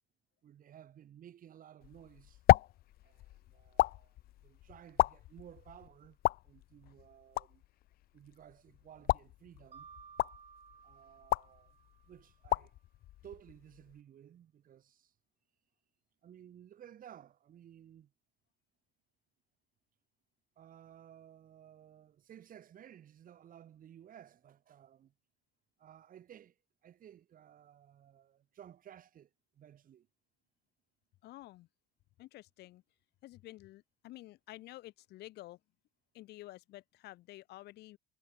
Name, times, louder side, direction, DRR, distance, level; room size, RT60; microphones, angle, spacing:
voice 1, 0.4-2.4 3.0-6.2 6.4-7.6 8.1-9.9 10.8-11.8 12.1-12.7 13.2-15.1 16.2-18.1 20.6-25.1 25.8-26.6 26.8-29.3 29.5-30.1, right 10 dB, 55° right, 7.4 m, -56 dB
sound 1, 1.8-14.0, left 15 dB, 65° left, 0.5 m, -34 dB
Mallet percussion, 9.7-12.5, right 7 dB, 35° right, 3.8 m, -57 dB
voice 2, 31.2-31.7 32.2-32.8 33.2-35.6 36.1-38.0, left 17 dB, 80° left, 2.8 m, -51 dB
cardioid pair, 110°, 17 cm